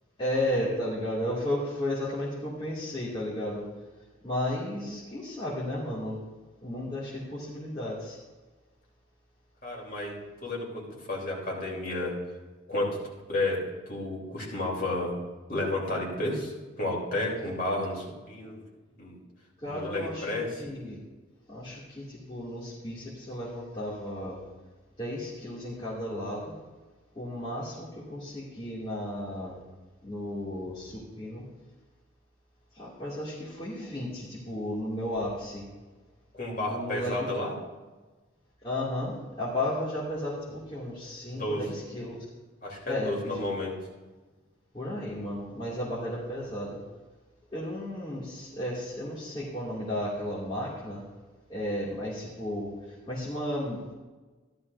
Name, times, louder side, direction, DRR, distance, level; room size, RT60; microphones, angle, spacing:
voice 1, 0.2-3.7 4.2-6.2 6.6-8.2 19.6-21.0 21.5-24.4 25.0-26.5 27.1-29.6 30.0-31.4 32.7-35.7 36.7-37.1 38.6-42.2 42.9-43.4 44.7-46.8 47.5-51.0 51.5-53.9, left 1 dB, 25° left, -9 dB, 2.4 m, -34 dB
voice 2, 9.6-10.1 10.4-12.1 12.7-13.0 13.3-13.6 13.9-15.1 15.5-16.5 16.8-18.6 19.0-19.2 19.6-20.5 36.3-37.5 41.3-41.7 42.6-43.7, left 2 dB, 45° left, -3 dB, 3.4 m, -31 dB
14.5 x 12.0 x 2.7 m, 1.3 s
head